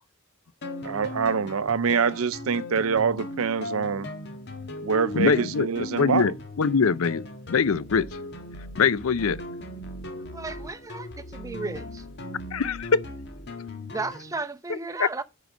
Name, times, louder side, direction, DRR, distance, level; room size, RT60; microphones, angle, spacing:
sound 1, 0.6-14.3, left 1 dB, 55° left, 1.7 m, -38 dB
voice 1, 0.8-4.1 4.8-6.3, right 6 dB, 70° right, 0.6 m, -25 dB
voice 2, 5.1-7.2 7.5-8.1 8.8-9.4 12.5-13.0 14.7-15.1, left 5 dB, 75° left, 0.5 m, -23 dB
voice 3, 10.1-12.0 13.9-15.2, right 3 dB, 15° right, 0.7 m, -34 dB
10.5 x 4.7 x 5.0 m
head